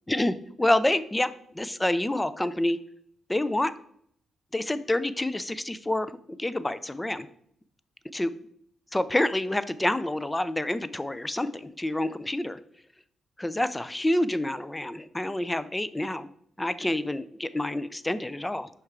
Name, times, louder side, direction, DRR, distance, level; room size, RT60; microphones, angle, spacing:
voice 1, 0.1-2.8 3.3-3.7 4.5-6.1 6.4-7.3 8.1-8.3 8.9-12.6 13.4-16.3 16.6-18.7, left 1 dB, 15° left, 15 dB, 0.4 m, -27 dB
6.2 x 4.6 x 3.7 m, 0.67 s
supercardioid pair, 55°, 0 cm